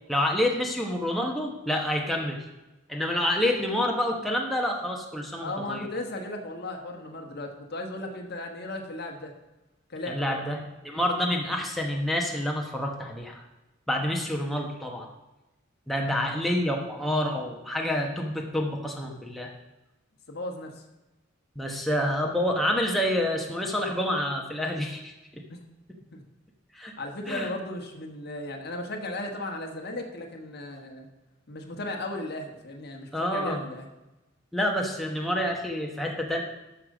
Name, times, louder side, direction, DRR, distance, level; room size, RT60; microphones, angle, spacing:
voice 1, 0.1-2.4 2.9-5.9 10.1-13.4 13.9-15.1 15.9-19.5 21.6-25.4 26.7-26.9 27.3-27.5 33.1-33.6 34.5-36.4, left 1 dB, ahead, -1 dB, 1.0 m, -28 dB
voice 2, 5.4-9.3 9.9-10.4 16.1-16.3 16.7-16.8 20.3-20.7 25.5-25.6 26.1-26.2 27.0-31.1 31.5-33.9, left 2 dB, 50° left, 3 dB, 1.5 m, -36 dB
12.0 x 6.7 x 5.0 m, 1.0 s
head